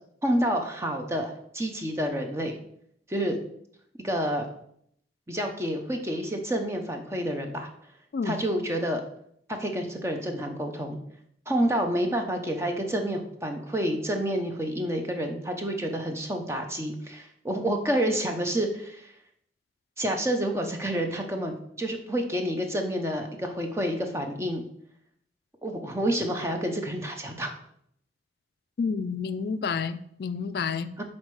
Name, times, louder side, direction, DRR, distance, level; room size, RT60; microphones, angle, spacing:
voice 1, 0.2-2.6 3.1-3.4 4.0-4.4 5.3-7.7 8.2-9.0 9.6-11.0 11.5-19.1 20.0-24.6 25.6-27.5 31.0-31.1, equal, 15° right, 4 dB, 0.7 m, -29 dB
voice 2, 28.8-31.0, left 5 dB, 60° left, 12 dB, 0.3 m, -30 dB
6.4 x 4.2 x 4.7 m, 0.70 s
head